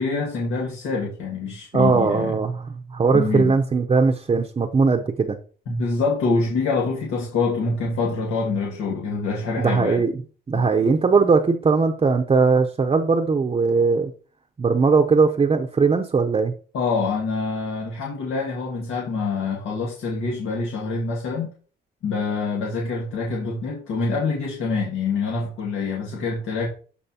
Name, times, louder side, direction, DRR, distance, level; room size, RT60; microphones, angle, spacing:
voice 1, 0.0-2.3 3.1-3.6 5.7-10.1 10.5-10.7 16.7-21.5 22.0-26.7, left 4 dB, 85° left, -2 dB, 1.9 m, -25 dB
voice 2, 1.7-2.6 2.9-5.4 9.6-10.1 10.5-14.1 14.6-16.5, right 4 dB, 30° right, 4 dB, 0.8 m, -19 dB
12.5 x 4.4 x 2.9 m, 0.39 s
cardioid pair, 90°, 20 cm